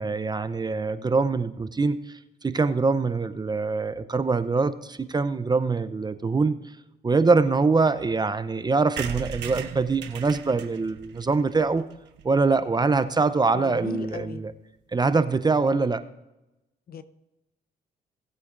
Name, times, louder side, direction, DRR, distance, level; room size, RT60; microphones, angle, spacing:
voice 1, 0.0-2.0 2.4-6.6 7.0-11.8 12.2-14.5 14.9-16.0, right 4 dB, 25° right, 12 dB, 0.6 m, -23 dB
sound 1, 9.0-12.6 13.1-13.2 13.4-13.5 13.7-13.8 14.0-14.2, right 8 dB, 75° right, 1.1 m, -38 dB
voice 2, 13.5-14.4 16.9-17.0, left 7 dB, 55° left, 12 dB, 0.8 m, -36 dB
18.0 x 8.4 x 2.6 m, 0.95 s
cardioid pair, 75°, 18 cm